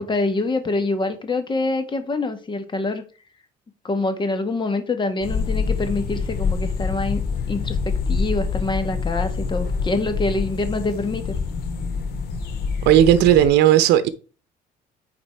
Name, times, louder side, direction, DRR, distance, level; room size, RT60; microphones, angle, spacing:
voice 1, 0.0-3.0 3.8-7.2 7.5-11.2, left 2 dB, 30° left, 1.6 m, -25 dB
sound 1, 5.2-13.5, left 5 dB, 75° left, 2.0 m, -26 dB
voice 2, 12.9-14.1, right 11 dB, 85° right, 0.7 m, -14 dB
9.5 x 4.2 x 4.6 m
cardioid pair, 110°, 17 cm